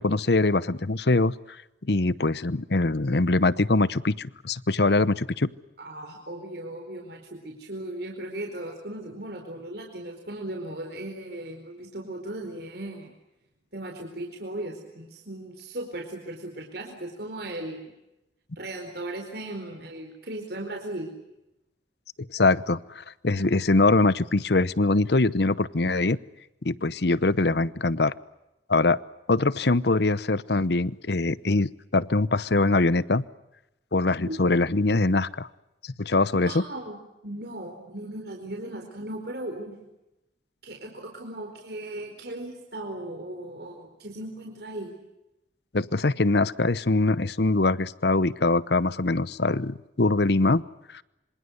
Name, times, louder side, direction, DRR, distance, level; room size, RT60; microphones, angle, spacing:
voice 1, 0.0-1.3 1.9-5.5 22.3-26.2 26.6-28.1 28.7-29.0 29.3-33.2 33.9-35.5 36.0-36.6 45.7-50.6 50.9-51.0, left 2 dB, 60° left, 18 dB, 0.9 m, -23 dB
voice 2, 5.8-13.1 13.7-17.9 18.6-21.1 34.3-34.6 36.4-39.8 40.6-44.9, right 1 dB, 60° right, 2 dB, 4.4 m, -37 dB
26.5 x 26.0 x 8.0 m, 0.93 s
head